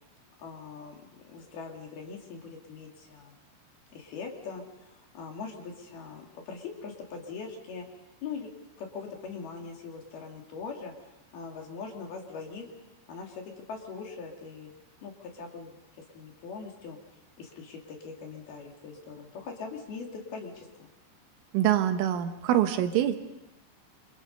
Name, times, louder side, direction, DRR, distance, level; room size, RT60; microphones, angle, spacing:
voice 1, 0.4-3.4 3.9-7.8 8.2-8.5 8.8-10.9 11.3-12.7 13.1-14.7 15.0-15.8 16.1-17.0 17.4-20.9, left 5 dB, 55° left, 2 dB, 4.2 m, -41 dB
voice 2, 21.5-23.2, right 11 dB, 80° right, 7 dB, 3.7 m, -25 dB
27.0 x 27.0 x 5.5 m, 0.98 s
omnidirectional pair, 5.7 m